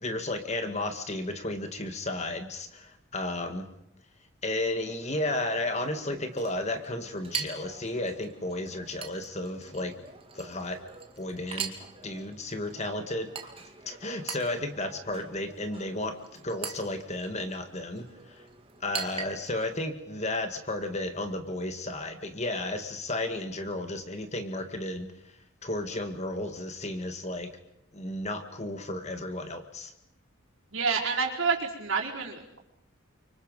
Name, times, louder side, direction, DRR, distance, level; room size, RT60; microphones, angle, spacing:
voice 1, 0.0-3.7 4.4-9.9 10.3-10.8 11.2-11.7 12.0-13.3 13.9-18.4 18.8-25.1 25.6-27.5 27.9-29.9, left 1 dB, 30° left, 7 dB, 1.9 m, -33 dB
Chink clink, 4.8-19.8, right 6 dB, 25° right, 2.3 m, -43 dB
voice 2, 30.7-32.6, right 5 dB, 70° right, -1 dB, 4.6 m, -28 dB
30.0 x 25.0 x 5.4 m, 0.81 s
head